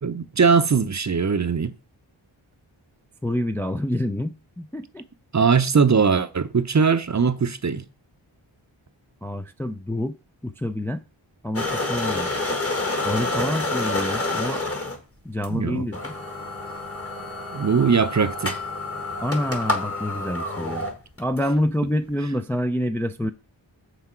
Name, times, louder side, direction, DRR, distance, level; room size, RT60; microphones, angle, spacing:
voice 1, 0.0-1.8 5.3-7.8 15.5-15.9 17.5-18.6, right 5 dB, 40° right, 0.6 m, -20 dB
voice 2, 3.2-5.0 9.2-10.2 10.4-11.0 11.4-12.3 13.0-14.6 15.2-16.1 19.2-20.9 21.2-23.3, left 1 dB, 5° left, 0.4 m, -27 dB
sound 1, 11.5-15.0 15.4-15.5 15.9-21.4, left 2 dB, 30° left, 1.6 m, -28 dB
6.9 x 6.0 x 4.4 m
wide cardioid pair, 95°, 46 cm